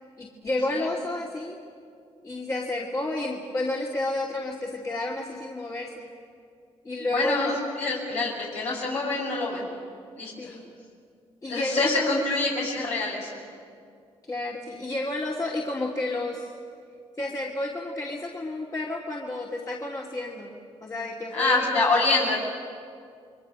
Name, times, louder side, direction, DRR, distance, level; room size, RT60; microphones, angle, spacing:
voice 1, 0.2-1.6 2.2-6.1 6.8-7.8 8.1-8.2 10.4-10.8 11.4-12.3 14.3-16.5 17.2-20.5 20.8-22.0, left 2 dB, 30° left, -3 dB, 2.6 m, -31 dB
voice 2, 7.0-9.7 10.2-10.6 11.5-13.4 21.3-22.4, left 3 dB, 75° left, -4 dB, 6.1 m, -26 dB
28.0 x 22.5 x 6.4 m, 2.3 s
cardioid pair, 75°, 11 cm